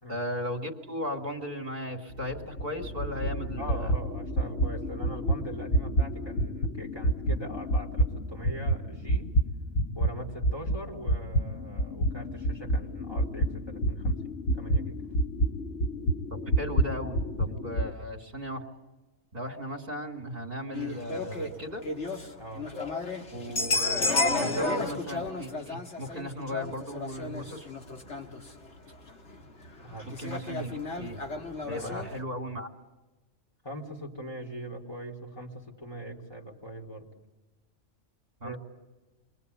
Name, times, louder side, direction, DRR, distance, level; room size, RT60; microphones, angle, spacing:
voice 1, 0.1-3.9 16.3-18.6 19.3-21.8 23.3-27.7 30.0-31.2 31.7-32.7 38.4-38.5, equal, 45° right, 4 dB, 3.0 m, -36 dB
sound 1, 2.1-10.1 10.4-17.9, right 1 dB, 75° left, 1.6 m, -29 dB
voice 2, 3.6-9.3 9.9-15.0 17.5-17.6 22.4-22.7 29.8-30.1 31.7-32.1 33.6-37.1 38.4-38.6, right 1 dB, 20° left, -1 dB, 4.0 m, -41 dB
sound 2, 20.7-32.2, left 2 dB, 55° left, 2.3 m, -32 dB
28.0 x 23.5 x 8.4 m, 1.1 s
omnidirectional pair, 1.4 m